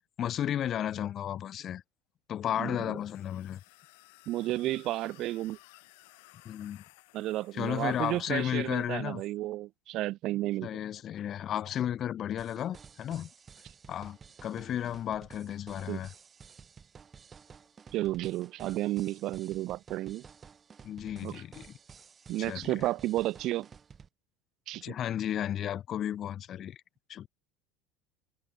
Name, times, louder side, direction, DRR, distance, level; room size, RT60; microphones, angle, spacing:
voice 1, 0.2-1.8 2.3-3.6 6.5-6.8 7.5-9.2 10.6-13.3 13.9-16.1 20.8-21.7 22.4-22.8 24.8-26.8 27.1-27.3, left 10 dB, 45° left, 0.5 m, -33 dB
sound 1, 3.0-8.9, left 26 dB, 75° left, 7.0 m, -58 dB
voice 2, 4.3-5.6 7.1-10.7 15.9-16.0 17.9-20.2 21.2-21.4 22.3-23.7 24.7-25.0, right 16 dB, 55° right, 0.3 m, -32 dB
sound 2, 12.4-24.1, right 6 dB, 30° right, 7.9 m, -53 dB
supercardioid pair, 95°, 0 cm